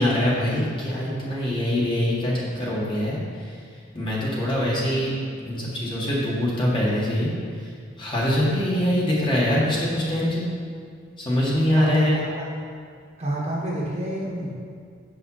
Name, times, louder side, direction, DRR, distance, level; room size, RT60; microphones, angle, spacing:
voice 1, 0.0-3.5 4.0-5.2 5.4-7.3 7.6-7.7 8.0-10.4 11.3-12.2, left 1 dB, 25° left, -6 dB, 1.8 m, -23 dB
voice 2, 11.7-12.5 13.2-14.6, right 1 dB, 35° right, -5 dB, 1.5 m, -29 dB
8.0 x 5.6 x 5.6 m, 2.1 s
head